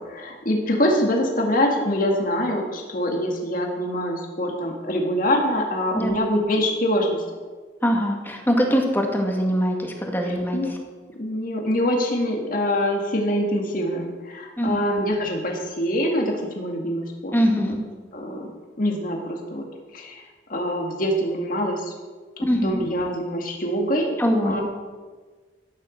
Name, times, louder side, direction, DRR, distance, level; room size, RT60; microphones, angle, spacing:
voice 1, 0.1-7.2 10.3-10.7 11.2-17.3 18.1-18.5 18.8-19.6 19.9-20.2 20.5-21.9 22.6-24.1 24.4-24.6, equal, 45° left, 1 dB, 2.0 m, -24 dB
voice 2, 7.8-10.8 14.6-14.8 17.3-17.8 22.4-22.8 24.2-24.6, equal, 10° left, 2 dB, 2.1 m, -22 dB
14.0 x 10.5 x 6.5 m, 1.4 s
head